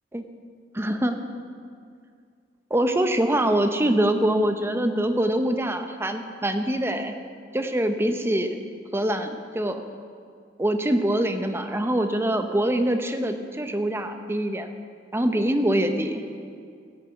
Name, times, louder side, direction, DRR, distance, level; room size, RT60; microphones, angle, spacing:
voice 1, 0.7-1.2 2.7-7.1 7.5-8.6 8.9-9.8 10.6-14.7 15.1-16.2, right 1 dB, 15° right, 7 dB, 0.7 m, -24 dB
14.5 x 6.8 x 7.9 m, 2.2 s
head